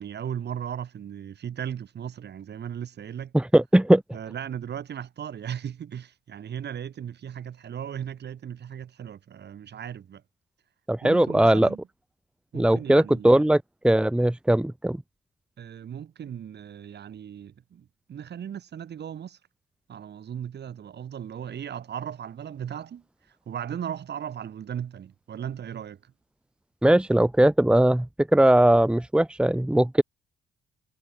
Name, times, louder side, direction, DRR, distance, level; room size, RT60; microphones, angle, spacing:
voice 1, 0.0-3.3 4.1-10.2 11.0-11.8 12.5-13.4 15.6-19.4 19.9-23.0 23.5-26.0, right 9 dB, 60° right, 4.1 m, -37 dB
voice 2, 3.3-4.0 10.9-11.7 12.5-15.0 26.8-28.1 28.3-30.0, right 1 dB, 5° right, 1.1 m, -19 dB
cardioid pair, 90°, 20 cm